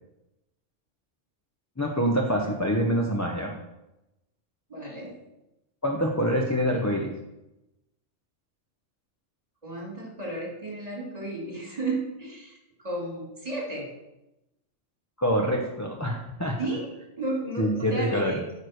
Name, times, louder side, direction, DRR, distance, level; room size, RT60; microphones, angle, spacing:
voice 1, 1.8-3.5 5.8-7.1 15.2-16.6 17.6-18.3, equal, 15° left, -1 dB, 0.9 m, -25 dB
voice 2, 4.7-5.2 9.6-13.9 16.6-16.9 17.2-18.4, right 2 dB, 30° right, -2 dB, 2.5 m, -33 dB
9.4 x 4.9 x 6.4 m, 0.92 s
omnidirectional pair, 1.3 m